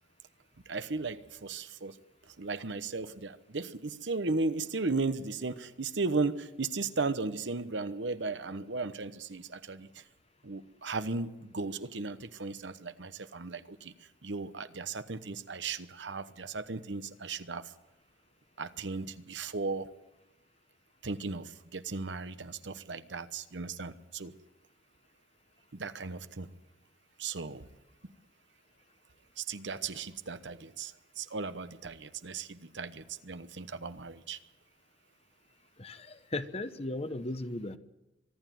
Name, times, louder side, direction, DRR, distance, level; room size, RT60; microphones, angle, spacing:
voice 1, 0.7-2.0 2.3-10.0 10.4-13.9 14.2-17.7 18.6-19.9 21.0-24.3 25.7-26.5 27.2-27.7 29.4-34.4, right 3 dB, 70° right, 12 dB, 1.0 m, -36 dB
voice 2, 35.8-37.8, left 2 dB, 35° left, 12 dB, 0.9 m, -36 dB
24.0 x 12.5 x 9.3 m, 0.99 s
head